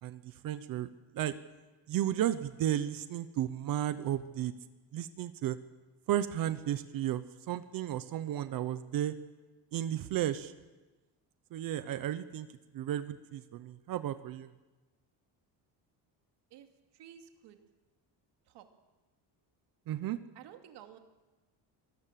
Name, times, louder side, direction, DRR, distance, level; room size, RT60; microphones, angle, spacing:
voice 1, 0.0-1.4 1.9-4.5 4.9-5.6 6.1-9.1 9.7-10.5 11.5-12.5 12.7-14.5 19.9-20.2, right 11 dB, 50° right, 12 dB, 1.0 m, -33 dB
voice 2, 16.9-17.6 18.5-18.7 20.3-21.0, right 10 dB, 70° right, 5 dB, 2.5 m, -52 dB
26.0 x 19.0 x 7.6 m, 1.2 s
cardioid pair, 175°, 43 cm